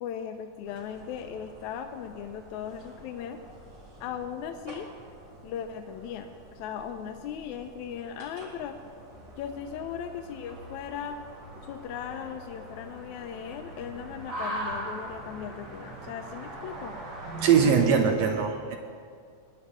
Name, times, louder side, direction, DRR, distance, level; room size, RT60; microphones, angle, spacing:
voice 1, 0.0-3.4 4.0-4.9 5.4-8.8 9.4-11.2 11.7-17.0, left 8 dB, 80° left, 6 dB, 1.8 m, -38 dB
sound 1, 0.6-17.7, right 1 dB, 35° right, 2.6 m, -43 dB
voice 2, 17.3-18.8, right 6 dB, 75° right, 4 dB, 1.8 m, -22 dB
19.5 x 11.0 x 3.7 m, 2.1 s
omnidirectional pair, 3.6 m